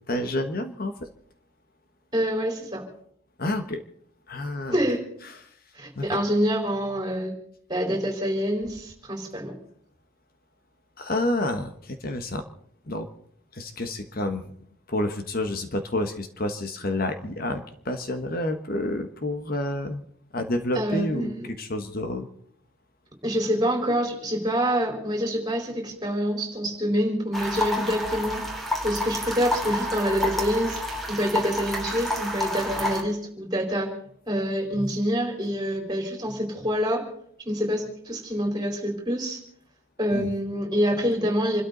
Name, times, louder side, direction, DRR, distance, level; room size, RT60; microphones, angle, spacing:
voice 1, 0.1-1.1 3.4-3.8 4.3-4.8 5.2-5.4 5.9-6.0 11.0-12.4 12.9-13.1 13.5-14.5 14.9-20.0 20.3-22.3 40.1-40.3, left 1 dB, 45° left, 7 dB, 1.3 m, -29 dB
voice 2, 2.1-2.9 4.7-5.0 5.8-7.3 7.7-9.5 20.7-21.5 23.2-28.4 28.8-30.8 31.1-33.9 34.3-37.0 37.5-39.4 40.0-41.6, equal, 20° right, 2 dB, 4.3 m, -26 dB
sound 1, 27.3-33.0, left 1 dB, ahead, 2.9 m, -29 dB
27.5 x 13.0 x 4.0 m, 0.64 s
head